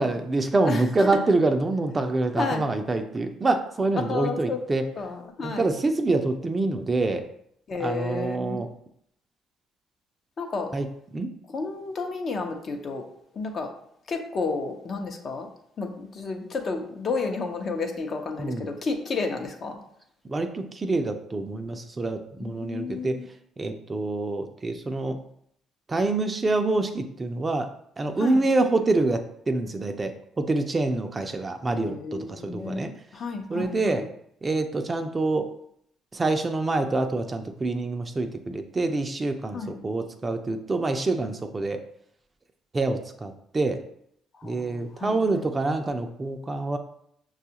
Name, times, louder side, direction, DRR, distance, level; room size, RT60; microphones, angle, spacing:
voice 1, 0.0-4.8 5.4-7.2 7.8-8.7 10.7-10.9 11.1-11.3 18.4-18.7 20.3-23.2 23.6-25.2 25.9-27.7 28.0-29.2 29.5-30.1 30.4-32.9 33.5-34.1 34.4-35.5 36.1-41.8 42.7-43.8 44.4-46.8, right 2 dB, 30° right, 6 dB, 0.5 m, -26 dB
voice 2, 0.7-1.2 2.4-2.7 4.0-4.6 5.0-5.7 7.7-8.6 10.4-10.7 11.5-13.0 13.3-13.7 14.1-15.5 15.8-19.8 22.4-23.3 28.2-28.4 31.7-34.1 39.5-39.8 44.4-45.4, left 4 dB, 50° left, 3 dB, 0.7 m, -31 dB
5.9 x 2.4 x 2.8 m, 0.70 s
supercardioid pair, 65°, 0 cm